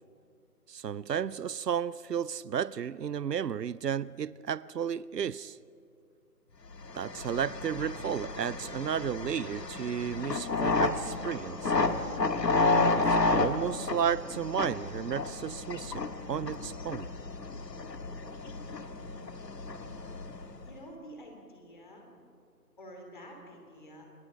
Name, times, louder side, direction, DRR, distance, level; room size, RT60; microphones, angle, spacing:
voice 1, 0.7-5.6 6.9-11.7 13.0-17.1, right 8 dB, 80° right, 0.6 m, -33 dB
sound 1, 6.8-20.7, left 3 dB, 80° left, 1.7 m, -31 dB
voice 2, 20.6-22.1 22.8-24.1, equal, 30° left, 3.1 m, -48 dB
28.5 x 19.5 x 5.1 m
figure-of-eight pair, 170°, 49 cm